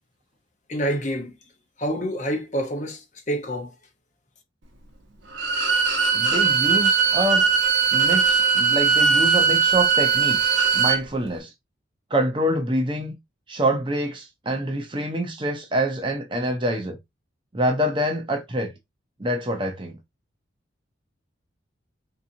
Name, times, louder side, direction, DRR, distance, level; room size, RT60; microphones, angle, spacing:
voice 1, 0.7-1.3 1.8-3.7, equal, 35° left, 0.7 m, -27 dB
Bowed string instrument, 5.3-11.0, right 6 dB, 70° right, 0.9 m, -20 dB
voice 2, 6.1-7.5 7.9-11.5 12.1-13.2 13.5-17.0 17.5-18.7 19.2-20.0, right 1 dB, 25° right, 0.6 m, -26 dB
3.9 x 2.8 x 2.6 m
head